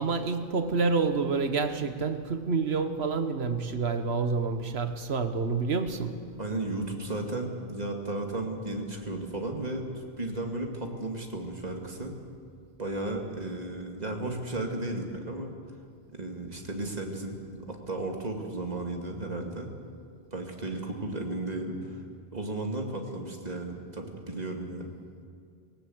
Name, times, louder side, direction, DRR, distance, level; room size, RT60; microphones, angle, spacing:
voice 1, 0.0-6.2, right 4 dB, 85° right, 8 dB, 1.5 m, -28 dB
voice 2, 6.4-9.9 10.2-12.2 12.8-15.5 16.1-19.7 20.3-22.0 22.3-24.9, right 2 dB, 40° right, 2 dB, 2.4 m, -34 dB
19.5 x 18.0 x 7.9 m, 2.3 s
omnidirectional pair, 1.0 m